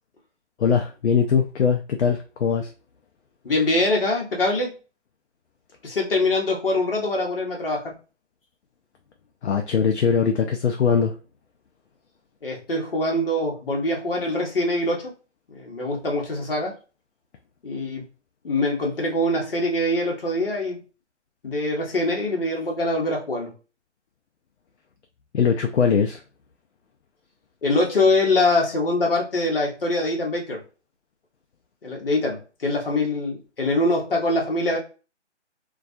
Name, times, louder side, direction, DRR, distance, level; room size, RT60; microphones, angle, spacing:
voice 1, 0.6-2.7 9.4-11.1 25.3-26.2, left 6 dB, 65° left, 3 dB, 0.5 m, -21 dB
voice 2, 3.4-4.8 5.8-7.9 12.4-15.1 15.5-16.8 17.6-18.0 18.4-20.8 21.4-23.5 27.6-30.6 31.8-34.8, left 2 dB, 50° left, -1 dB, 1.0 m, -23 dB
2.4 x 2.3 x 2.5 m, 0.34 s
figure-of-eight pair, 165°, 36 cm